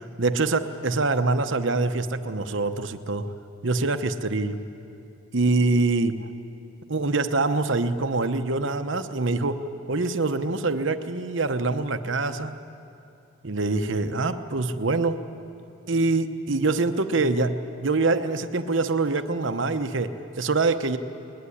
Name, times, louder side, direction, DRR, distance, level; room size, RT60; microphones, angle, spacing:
voice 1, 0.0-3.3 3.6-4.6 5.3-6.3 6.9-12.6 13.4-15.2 15.9-17.6 17.8-21.0, right 3 dB, 65° right, 9 dB, 0.9 m, -25 dB
20.5 x 20.0 x 9.9 m, 2.7 s
head